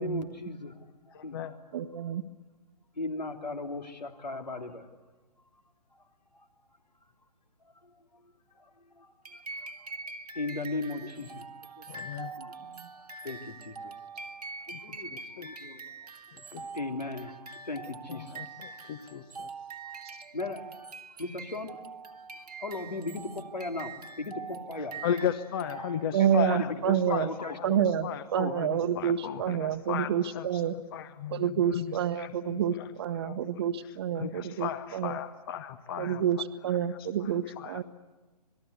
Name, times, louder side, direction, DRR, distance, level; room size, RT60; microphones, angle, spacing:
voice 1, 0.0-1.4 2.9-4.9 5.9-6.0 6.3-6.5 7.8-10.0 10.3-12.0 12.4-12.5 13.2-14.3 14.7-16.1 16.5-18.7 19.4-19.5 20.3-20.9 21.2-22.2 22.6-25.0 26.2-27.8, left 2 dB, 80° left, 5 dB, 3.3 m, -38 dB
voice 2, 1.1-1.5 11.9-12.3 14.7-15.7 16.3-16.7 18.1-19.5 24.8-30.6 30.9-32.9 33.2-33.4 33.8-36.2 36.7-37.8, left 9 dB, 35° left, 13 dB, 1.1 m, -36 dB
voice 3, 1.7-2.2 12.7-12.9 20.0-20.1 26.1-27.3 27.6-30.7 31.3-35.2 36.0-36.4 36.6-37.8, right 9 dB, 40° right, 11 dB, 1.2 m, -28 dB
sound 1, 9.2-26.3, right 4 dB, 65° right, 1.6 m, -44 dB
27.0 x 20.0 x 8.3 m, 1.2 s
figure-of-eight pair, 130°, 21 cm